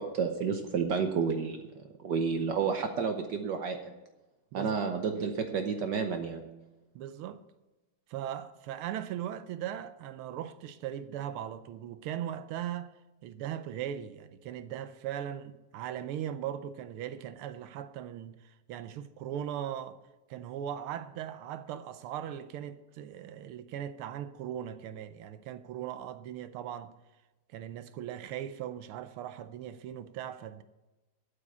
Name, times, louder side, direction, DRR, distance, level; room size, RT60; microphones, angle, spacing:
voice 1, 0.0-1.7 2.0-3.9 4.5-6.4, right 6 dB, 60° right, 1.3 m, -30 dB
voice 2, 6.9-7.4 8.1-12.9 13.2-20.0 20.3-26.9 27.5-30.6, right 10 dB, 80° right, 1.5 m, -39 dB
8.6 x 8.5 x 8.3 m
omnidirectional pair, 2.4 m